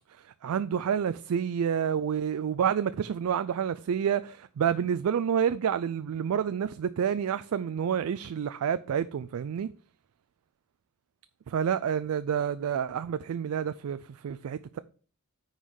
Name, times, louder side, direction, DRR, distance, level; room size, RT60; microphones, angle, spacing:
voice 1, 0.1-9.7 11.5-14.8, right 8 dB, 70° right, 0.3 m, -29 dB
9.3 x 3.9 x 4.7 m
head